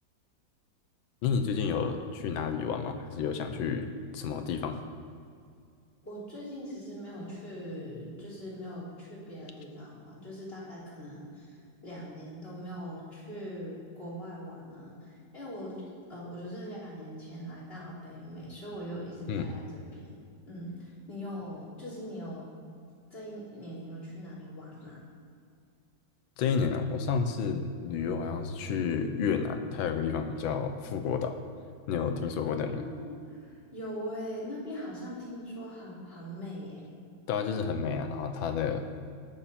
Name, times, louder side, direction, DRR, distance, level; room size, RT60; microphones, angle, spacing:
voice 1, 1.2-4.9 19.3-19.5 26.4-31.4 31.9-32.8 37.3-38.9, left 6 dB, 90° left, 7 dB, 1.7 m, -30 dB
voice 2, 6.0-15.1 15.3-15.8 16.1-20.2 20.5-22.5 23.1-25.0 32.5-36.9, equal, 30° left, -6 dB, 3.5 m, -41 dB
19.0 x 7.3 x 4.3 m, 2.3 s
omnidirectional pair, 2.1 m